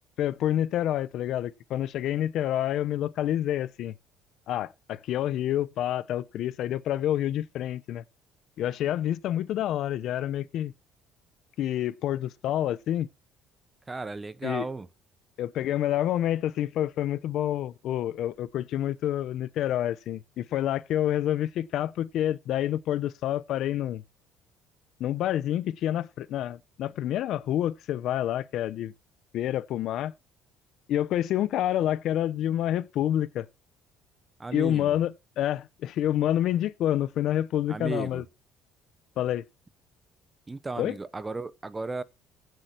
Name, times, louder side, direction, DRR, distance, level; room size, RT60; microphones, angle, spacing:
voice 1, 0.2-3.9 4.5-8.0 8.6-10.7 11.6-13.1 14.4-14.7 15.4-24.0 25.0-28.9 29.3-30.1 30.9-33.5 34.5-38.2 39.2-39.4 40.8-41.0, left 12 dB, 50° left, 0.7 m, -28 dB
voice 2, 13.9-14.9 34.4-35.0 37.7-38.2 40.5-42.0, right 3 dB, 15° right, 0.8 m, -35 dB
16.0 x 7.7 x 4.4 m
cardioid pair, 165°, 0 cm